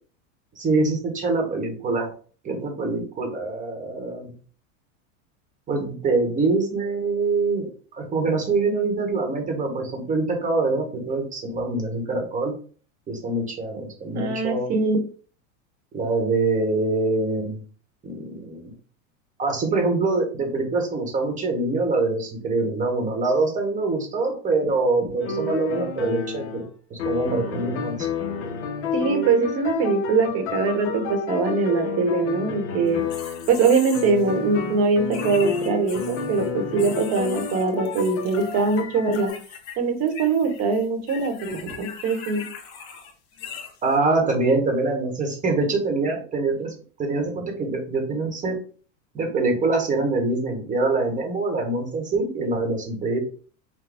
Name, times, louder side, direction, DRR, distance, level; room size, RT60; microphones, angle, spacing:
voice 1, 0.6-2.1 2.4-4.3 5.7-7.7 7.9-12.5 13.1-14.7 15.9-17.6 18.0-18.6 19.4-26.6 26.9-28.1 43.8-46.7 47.0-48.6 49.1-53.2, right 3 dB, 20° right, 3 dB, 1.1 m, -24 dB
voice 2, 14.1-15.0 28.9-33.0 33.5-39.3 39.8-42.4, right 4 dB, 40° right, 6 dB, 1.1 m, -22 dB
sound 1, 25.2-26.7 27.0-33.6 33.9-39.3, left 5 dB, 35° left, 0.8 m, -30 dB
sound 2, 32.9-34.3 35.1-36.5 36.8-38.8 39.1-39.8 40.0-43.9, left 7 dB, 65° left, 1.8 m, -40 dB
6.0 x 2.2 x 3.4 m, 0.42 s
supercardioid pair, 145°, 39 cm